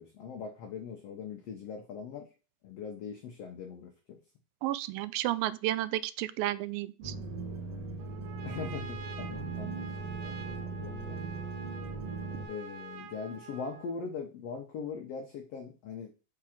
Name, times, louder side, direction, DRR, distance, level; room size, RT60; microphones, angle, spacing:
voice 1, 0.0-2.3 2.6-4.2 8.4-9.9 10.2-11.2 12.5-16.1, left 5 dB, 85° left, 3 dB, 1.4 m, -41 dB
voice 2, 4.6-7.1, right 15 dB, 90° right, 15 dB, 2.3 m, -32 dB
sound 1, 7.0-12.5, right 4 dB, 45° right, 2.4 m, -39 dB
Trumpet, 8.0-14.0, right 5 dB, 70° right, 2.1 m, -47 dB
5.8 x 3.7 x 5.8 m, 0.34 s
omnidirectional pair, 4.0 m